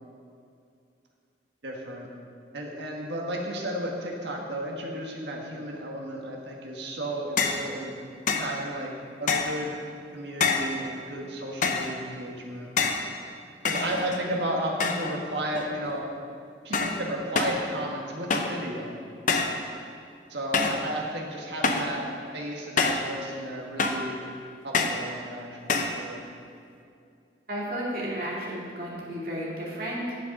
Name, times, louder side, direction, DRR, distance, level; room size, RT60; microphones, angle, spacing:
voice 1, 1.6-2.1 2.5-8.0 8.4-8.9 9.2-9.8 10.1-12.7 13.6-16.0 16.6-18.9 20.3-22.0 22.3-24.2 24.6-26.2, right 1 dB, 75° right, -1 dB, 1.6 m, -33 dB
sound 1, 7.4-7.7 8.3-8.5 9.3-9.6 10.4-10.8 11.6-12.0 12.8-13.1 13.7-14.3 14.8-15.2 15.5-16.0 16.7-17.0 17.4-17.6 18.3-18.6 19.3-19.6 20.5-20.9 21.6-22.0 22.8-23.1 23.8-24.1 24.7-25.1 25.7-26.0, left 4 dB, 45° left, 0.7 m, -26 dB
voice 2, 27.5-30.2, equal, 55° right, -5 dB, 2.3 m, -33 dB
10.5 x 6.9 x 5.4 m, 2.4 s
head